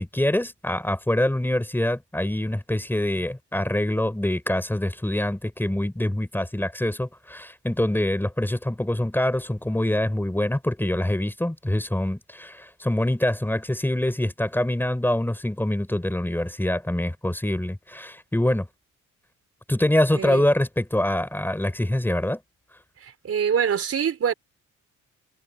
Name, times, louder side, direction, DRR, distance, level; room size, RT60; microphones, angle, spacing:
voice 1, 0.0-18.7 19.7-22.4, left 1 dB, 5° left, 3.6 m, -25 dB
voice 2, 20.1-20.4 23.0-24.3, right 7 dB, 50° right, 4.3 m, -25 dB
cardioid pair, 90°, 30 cm